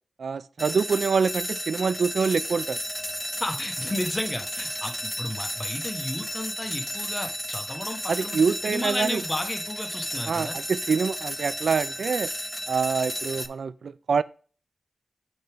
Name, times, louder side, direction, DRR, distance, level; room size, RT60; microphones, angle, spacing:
voice 1, 0.2-2.8 8.1-9.2 10.3-12.3 12.7-14.2, right 5 dB, 80° right, 0.3 m, -25 dB
sound 1, 0.6-13.5, equal, 5° left, 0.5 m, -33 dB
voice 2, 3.4-10.6, left 1 dB, 20° left, 1.0 m, -33 dB
6.5 x 5.8 x 3.4 m
wide cardioid pair, 80°, 0 cm